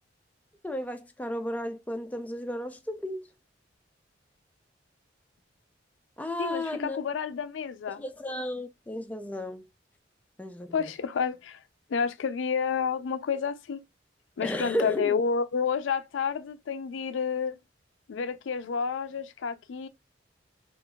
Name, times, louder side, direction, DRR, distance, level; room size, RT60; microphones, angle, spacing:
voice 1, 0.6-3.3 6.2-7.0 7.9-9.7 10.4-10.9 14.4-15.2, left 1 dB, 10° left, 0.3 m, -34 dB
voice 2, 6.4-8.0 10.7-11.6 11.9-13.8 14.4-17.6 18.1-19.9, left 6 dB, 80° left, 0.4 m, -30 dB
3.8 x 2.4 x 2.2 m
head